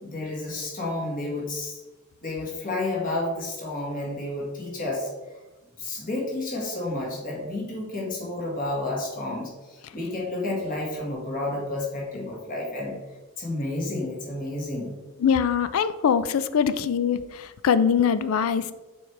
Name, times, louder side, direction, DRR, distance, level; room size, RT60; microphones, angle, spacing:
voice 1, 0.0-1.8 2.2-5.1 5.8-9.5 9.9-13.0 13.4-14.9, left 2 dB, 40° left, -3 dB, 1.7 m, -30 dB
voice 2, 15.2-18.7, left 7 dB, 90° left, 13 dB, 0.4 m, -23 dB
7.2 x 4.6 x 3.3 m, 1.2 s
head